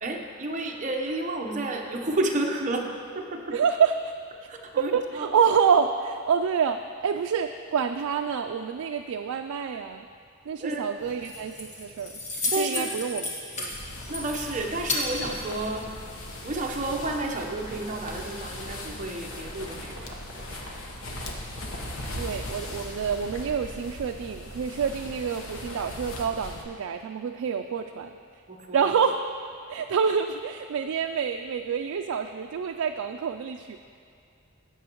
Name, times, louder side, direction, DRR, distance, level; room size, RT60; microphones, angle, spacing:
voice 1, 0.0-2.9 3.1-3.4 4.5-5.3 10.6-10.9 12.5-12.9 14.1-15.8 16.4-20.2 28.5-28.9, right 2 dB, 35° right, 1 dB, 0.9 m, -31 dB
voice 2, 3.5-4.1 4.8-10.0 10.5-12.1 12.6-13.7 22.2-28.1 28.7-29.2 29.7-33.8, right 6 dB, 85° right, 5 dB, 0.3 m, -27 dB
Keys jangling, 11.0-16.0, left 2 dB, 35° left, 1.5 m, -34 dB
sound 1, 13.7-26.6, left 1 dB, 85° left, 1.1 m, -39 dB
16.5 x 6.9 x 3.0 m, 2.4 s
head